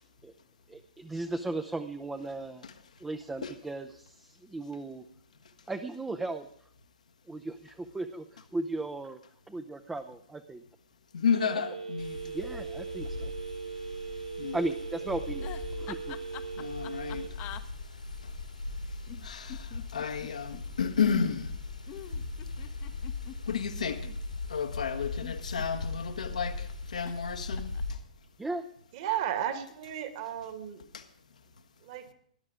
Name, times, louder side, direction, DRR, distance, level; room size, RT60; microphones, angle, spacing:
voice 1, 0.7-2.7 3.0-5.0 5.7-6.5 7.3-9.2 9.5-10.6 11.5-11.6 12.3-13.3 14.5-16.2 28.4-28.6, right 2 dB, 5° right, 0.7 m, -36 dB
voice 2, 11.1-12.2 14.4-14.6 16.6-17.2 19.2-19.5 19.9-21.5 23.5-24.0 24.5-26.5 26.9-27.7, left 6 dB, 70° left, 1.4 m, -31 dB
Telephone, 11.3-17.3, right 5 dB, 80° right, 2.0 m, -39 dB
sound 1, 12.0-28.0, left 3 dB, 85° left, 3.0 m, -39 dB
sound 2, 15.4-17.6 19.1-20.6 21.9-24.2 25.0-26.0 27.1-27.3 27.5-28.0, left 13 dB, 30° left, 1.0 m, -46 dB
voice 3, 28.9-30.8 31.8-32.0, right 10 dB, 45° right, 2.1 m, -34 dB
18.5 x 11.0 x 5.0 m
figure-of-eight pair, 110°, 4 cm